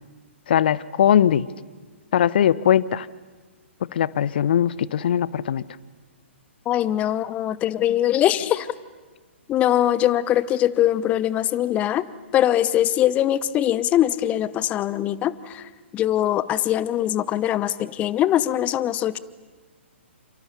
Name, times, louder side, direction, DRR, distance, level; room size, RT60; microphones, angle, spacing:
voice 1, 0.5-1.5 2.1-3.1 3.9-5.6, left 9 dB, 50° left, 20 dB, 0.8 m, -20 dB
voice 2, 6.7-8.7 9.5-12.0 12.3-15.6 15.9-19.2, left 12 dB, 20° left, 18 dB, 0.9 m, -22 dB
29.5 x 28.5 x 7.0 m, 1.4 s
figure-of-eight pair, 120°, 7 cm